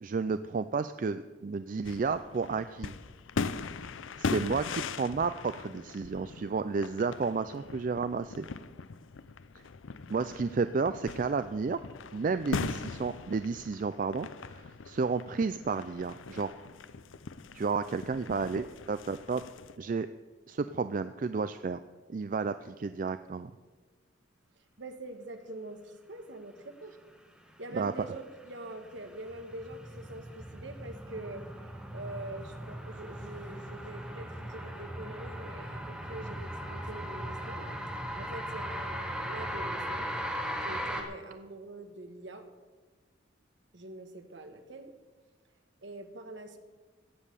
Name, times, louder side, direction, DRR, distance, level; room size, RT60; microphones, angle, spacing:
voice 1, 0.0-2.9 4.2-8.5 10.1-11.8 12.1-16.5 17.5-19.4 19.8-20.1 20.5-21.8 22.1-23.5 27.7-28.1, right 4 dB, 40° right, 11 dB, 0.3 m, -32 dB
sound 1, 1.8-19.8, left 4 dB, 80° left, 0.6 m, -40 dB
voice 2, 24.8-26.9 27.6-31.4 31.9-40.1 40.6-42.5 43.7-44.9 45.8-46.6, right 1 dB, 65° right, 6 dB, 1.5 m, -44 dB
sound 2, 28.2-41.0, equal, 5° right, 1.5 m, -38 dB
17.0 x 7.5 x 6.7 m, 1.4 s
head